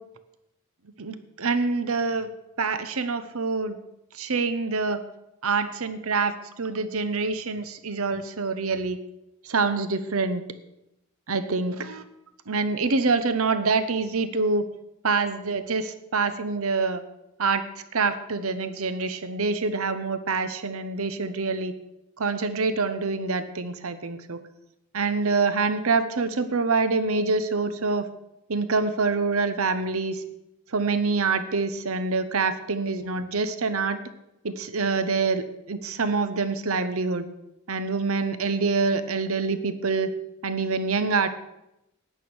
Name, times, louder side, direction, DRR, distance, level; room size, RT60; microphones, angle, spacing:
voice 1, 1.0-2.3 2.6-3.8 4.1-5.0 5.4-9.0 9.4-10.4 11.3-12.0 12.5-14.6 15.0-17.0 17.4-17.7 17.9-21.7 22.2-24.4 24.9-28.1 28.5-30.2 30.7-34.0 34.4-37.3 37.7-40.1 40.4-41.3, right 4 dB, 75° right, 12 dB, 0.9 m, -26 dB
11.5 x 9.0 x 6.2 m, 0.87 s
head